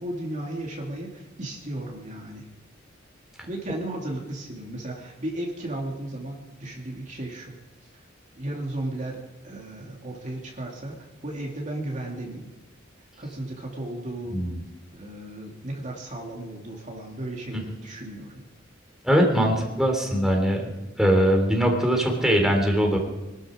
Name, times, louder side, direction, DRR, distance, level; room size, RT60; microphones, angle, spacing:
voice 1, 0.0-2.5 3.5-7.5 7.9-8.0 8.4-9.2 9.4-12.5 13.2-14.4 14.9-18.4, right 1 dB, 40° right, -1 dB, 2.5 m, -35 dB
voice 2, 14.3-14.6 17.5-17.6 19.0-20.7 21.0-23.0, equal, 5° right, 1 dB, 3.1 m, -21 dB
23.0 x 12.5 x 5.0 m, 1.0 s
head